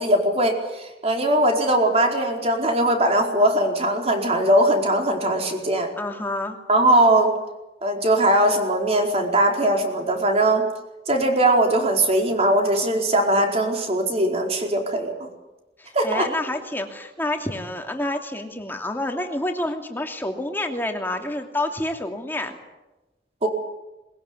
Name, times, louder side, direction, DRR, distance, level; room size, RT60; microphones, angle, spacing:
voice 1, 0.0-5.9 6.7-7.3 7.8-10.7 11.1-15.3 15.9-16.3 23.4-23.5, right 1 dB, 35° right, 2 dB, 4.7 m, -20 dB
voice 2, 6.0-6.6 15.8-22.6, left 1 dB, 10° left, 3 dB, 2.8 m, -28 dB
21.5 x 21.5 x 9.9 m, 1.0 s
head